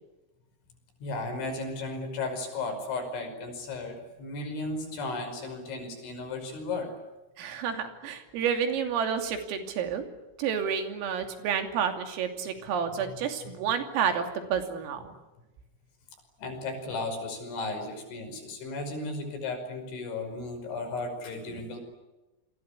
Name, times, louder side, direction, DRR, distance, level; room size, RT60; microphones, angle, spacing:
voice 1, 1.0-7.0 12.9-13.2 16.4-21.8, left 3 dB, 65° left, 5 dB, 7.9 m, -35 dB
voice 2, 7.4-10.0 10.4-14.2 14.5-15.1, right 7 dB, 85° right, 6 dB, 5.5 m, -30 dB
28.5 x 23.5 x 8.3 m, 1.1 s
omnidirectional pair, 5.8 m